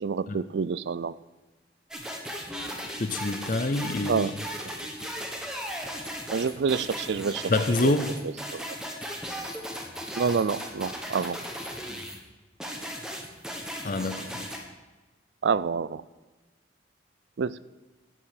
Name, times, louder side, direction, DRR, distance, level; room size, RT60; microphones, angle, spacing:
voice 1, 0.0-1.2 4.1-4.3 6.3-7.5 7.8-7.9 8.5-8.6 10.2-11.4 15.4-16.0 17.4-17.7, right 5 dB, 80° right, 19 dB, 0.4 m, -27 dB
sound 1, 1.9-12.2 12.6-14.6, equal, 5° right, 1.4 m, -36 dB
voice 2, 3.0-4.3 7.5-8.1 13.8-14.5, left 2 dB, 50° left, 9 dB, 0.6 m, -26 dB
11.0 x 8.7 x 6.6 m, 1.2 s
head